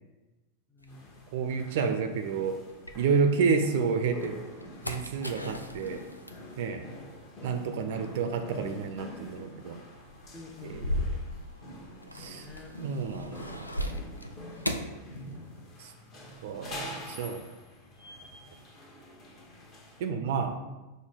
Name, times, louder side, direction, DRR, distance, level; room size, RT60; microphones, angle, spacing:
voice 1, 0.7-1.1 6.6-7.0 10.3-11.1 12.2-12.7 14.6-15.3, left 3 dB, 15° left, 4 dB, 0.5 m, -49 dB
sound 1, 0.8-3.6 4.0-15.8 16.1-16.9, left 1 dB, 85° left, 0.3 m, -39 dB
sound 2, 0.9-20.1, equal, 30° left, 1.1 m, -46 dB
voice 2, 1.3-2.6 2.9-4.4 4.8-6.0 6.6-6.8 7.4-9.8 10.6-11.2 12.1-12.5 12.8-13.7 15.8-15.9 16.4-17.4 20.0-20.6, right 5 dB, 55° right, 6 dB, 0.4 m, -30 dB
5.2 x 2.2 x 4.5 m, 1.1 s
figure-of-eight pair, 90°, 0 cm